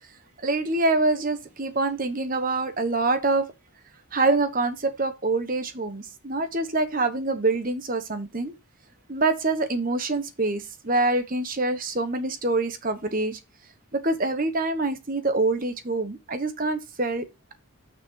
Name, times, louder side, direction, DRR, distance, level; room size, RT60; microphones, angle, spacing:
voice 1, 0.4-3.4 4.1-8.5 9.1-13.4 13.9-17.2, right 2 dB, 40° right, 1.2 m, -25 dB
6.4 x 5.1 x 4.7 m
head